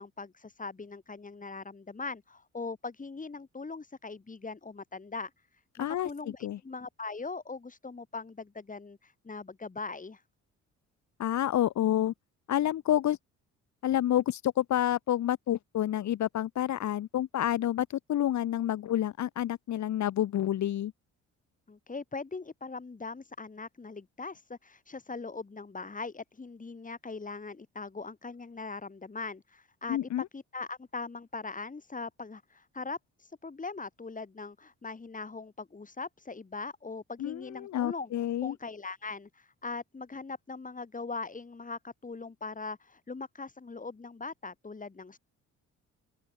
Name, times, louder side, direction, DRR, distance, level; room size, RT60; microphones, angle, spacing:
voice 1, 0.0-10.2 21.7-30.0 30.3-38.1 38.4-45.2, left 4 dB, 25° left, 6.0 m, -41 dB
voice 2, 5.8-6.1 6.4-6.6 11.2-12.1 12.5-13.2 13.8-20.9 29.9-30.3 37.2-38.5, left 12 dB, 65° left, 1.6 m, -29 dB
open air
cardioid pair, 90°, 30 cm